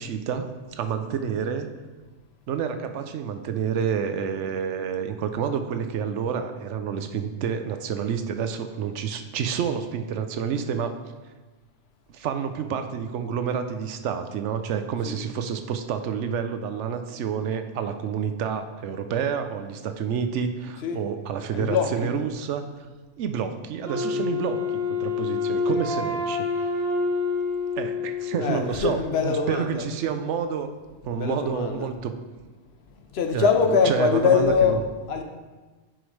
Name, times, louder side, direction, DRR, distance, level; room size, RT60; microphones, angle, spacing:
voice 1, 0.0-1.7 2.5-10.9 12.1-22.6 23.2-24.6 25.0-26.7 27.8-30.7 31.0-32.1 33.3-34.8, right 7 dB, 85° right, 0.9 m, -29 dB
voice 2, 21.5-22.1 24.1-24.2 28.4-29.9 31.1-32.0 33.1-35.2, left 5 dB, 65° left, 0.9 m, -23 dB
Wind instrument woodwind instrument, 23.8-28.8, left 4 dB, 60° right, 1.8 m, -27 dB
10.0 x 4.7 x 3.2 m
omnidirectional pair, 1.2 m